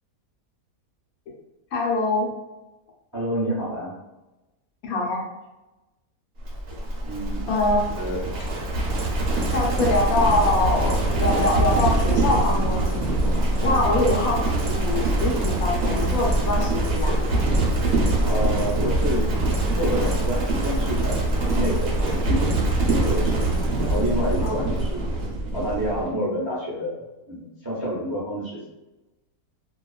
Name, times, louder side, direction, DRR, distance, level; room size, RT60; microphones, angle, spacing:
voice 1, 1.7-2.3 4.8-5.2 7.5-7.8 9.5-13.3 13.6-17.2 24.4-24.6, left 2 dB, 75° left, -2 dB, 1.1 m, -24 dB
voice 2, 3.1-3.9 7.0-7.4 7.9-8.2 18.2-19.2 19.8-22.4 22.8-23.4 23.8-25.1 25.5-27.0 27.3-28.6, equal, 25° right, -10 dB, 0.5 m, -28 dB
Livestock farm animals working animals, 6.5-26.1, right 2 dB, 60° right, 0.8 m, -23 dB
2.4 x 2.2 x 2.3 m, 1.0 s
omnidirectional pair, 1.6 m